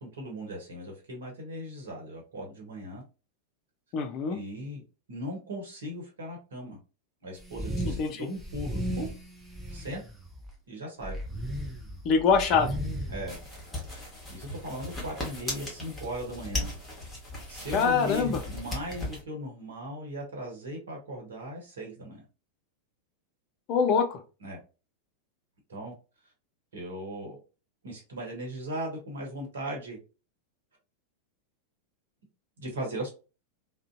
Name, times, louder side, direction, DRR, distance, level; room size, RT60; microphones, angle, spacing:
voice 1, 0.0-3.0 4.3-4.8 5.1-6.8 7.2-9.1 9.7-10.0 10.7-11.2 12.5-12.7 13.1-13.4 14.3-16.7 17.5-22.2 24.4-24.6 25.7-25.9 26.7-27.4 27.8-30.0 32.6-33.1, equal, 65° right, 0 dB, 1.0 m, -38 dB
voice 2, 3.9-4.4 7.8-8.3 12.0-12.7 17.7-18.4 23.7-24.2, left 5 dB, 40° left, 7 dB, 0.4 m, -24 dB
sound 1, 7.4-8.0 8.4-10.5 11.0-13.9, equal, 10° right, 0.6 m, -35 dB
sound 2, 13.3-19.2, left 1 dB, 10° left, 1.0 m, -37 dB
2.5 x 2.0 x 2.5 m, 0.33 s
figure-of-eight pair, 90°, 0 cm